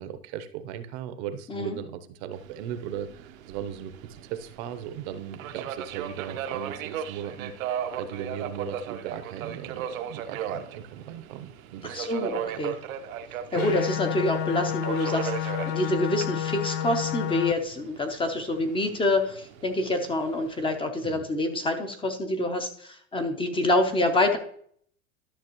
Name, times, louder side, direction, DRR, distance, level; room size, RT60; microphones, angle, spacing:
voice 1, 0.0-12.1 12.5-12.6 21.0-21.3, right 9 dB, 55° right, 11 dB, 0.8 m, -38 dB
Subway metro underground, 2.3-20.8, right 8 dB, 80° right, 0.9 m, -37 dB
voice 2, 11.8-12.7 13.5-24.4, left 1 dB, 15° left, 6 dB, 0.7 m, -27 dB
sound 1, 13.6-17.5, left 10 dB, 55° left, 0.5 m, -30 dB
12.0 x 5.9 x 3.0 m, 0.62 s
supercardioid pair, 135°, 40 cm